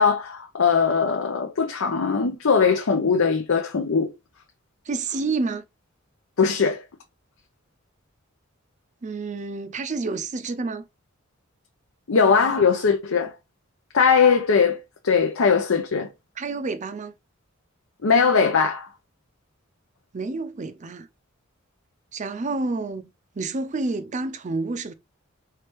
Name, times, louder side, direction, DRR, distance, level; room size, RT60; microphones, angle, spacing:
voice 1, 0.0-4.1 6.4-6.8 12.1-13.3 13.9-14.8 15.0-16.1 18.0-18.9, left 5 dB, 80° left, 0.7 m, -20 dB
voice 2, 4.9-5.6 9.0-10.8 16.4-17.1 20.1-21.1 22.1-23.1 23.4-24.9, right 3 dB, 35° right, 0.4 m, -29 dB
4.6 x 3.3 x 3.0 m
head